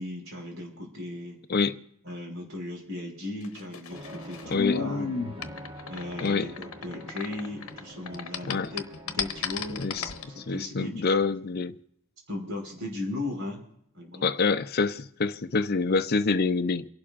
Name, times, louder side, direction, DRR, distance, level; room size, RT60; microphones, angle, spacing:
voice 1, 0.0-1.4 2.0-5.1 5.9-11.0 12.3-13.6 13.9-14.3, left 2 dB, 60° right, 5.5 m, -37 dB
sound 1, 3.4-7.8 8.1-10.2, left 5 dB, 75° left, 0.9 m, -32 dB
sound 2, 3.9-10.7, equal, 25° right, 1.4 m, -45 dB
voice 2, 6.2-6.5 8.5-8.7 9.8-10.0 10.4-11.7 14.2-16.9, left 4 dB, 45° left, 0.5 m, -26 dB
29.0 x 11.5 x 2.5 m
head